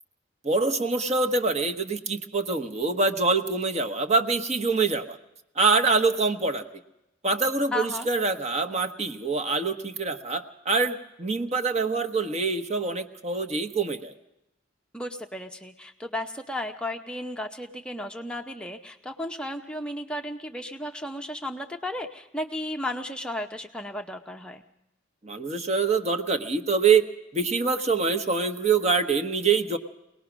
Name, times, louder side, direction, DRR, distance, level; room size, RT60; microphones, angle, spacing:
voice 1, 0.4-5.2 5.5-6.6 7.2-14.1 25.2-27.0 27.3-29.8, right 4 dB, 35° right, 8 dB, 1.1 m, -25 dB
voice 2, 7.7-8.1 14.9-24.6, left 1 dB, 5° left, 4 dB, 0.7 m, -34 dB
23.5 x 19.0 x 6.2 m, 0.88 s
head